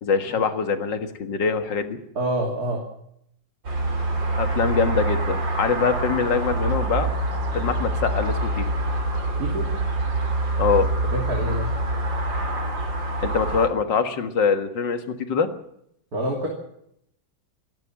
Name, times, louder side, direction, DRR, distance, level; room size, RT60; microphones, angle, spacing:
voice 1, 0.0-2.0 4.4-7.1 7.5-8.7 10.6-10.9 13.2-15.5, left 5 dB, 70° left, 8 dB, 2.3 m, -24 dB
voice 2, 2.1-2.8 9.4-9.7 11.1-11.7 16.1-16.5, right 1 dB, 50° right, 0 dB, 3.4 m, -27 dB
sound 1, 3.6-13.7, right 2 dB, 75° right, 4.0 m, -25 dB
28.0 x 12.0 x 7.5 m, 0.74 s
omnidirectional pair, 2.0 m